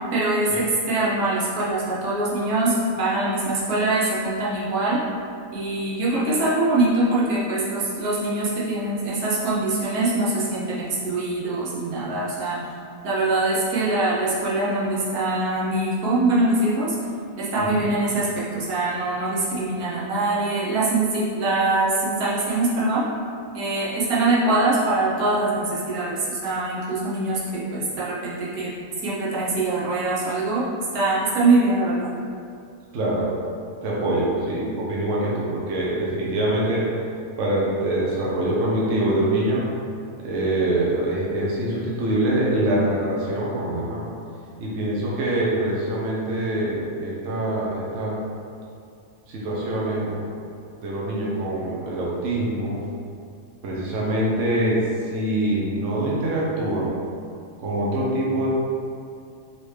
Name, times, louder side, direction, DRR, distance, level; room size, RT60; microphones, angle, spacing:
voice 1, 0.1-5.0 5.5-12.6 13.0-17.0 17.4-23.1 23.5-28.7 29.0-30.7 30.9-32.1, right 2 dB, 80° right, -7 dB, 1.3 m, -23 dB
voice 2, 17.6-17.9 32.9-33.3 33.8-36.9 37.4-39.7 40.2-44.0 44.6-48.2 49.3-50.3 50.8-52.8 53.6-57.0 57.6-58.5, right 1 dB, 60° right, -5 dB, 1.0 m, -24 dB
4.2 x 3.2 x 3.2 m, 2.4 s
omnidirectional pair, 1.5 m